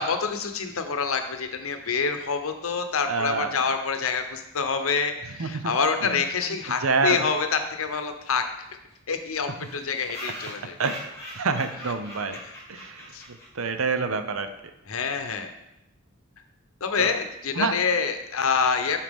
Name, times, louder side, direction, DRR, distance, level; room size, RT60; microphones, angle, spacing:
voice 1, 0.0-8.4 9.1-10.8 12.4-12.5 13.1-13.2 14.9-15.5 16.8-19.0, left 5 dB, 75° left, 7 dB, 0.8 m, -27 dB
voice 2, 3.1-3.6 5.4-5.7 6.0-6.2 6.8-7.3 10.8-12.4 12.7-13.1 13.5-14.5 17.0-17.2 17.5-17.7, right 4 dB, 75° right, 9 dB, 0.7 m, -27 dB
sound 1, 7.9-8.0 8.2-8.3 8.6-8.7 8.9-9.0 9.6-13.8, equal, 15° left, 1.7 m, -41 dB
11.0 x 4.4 x 3.6 m, 0.88 s
head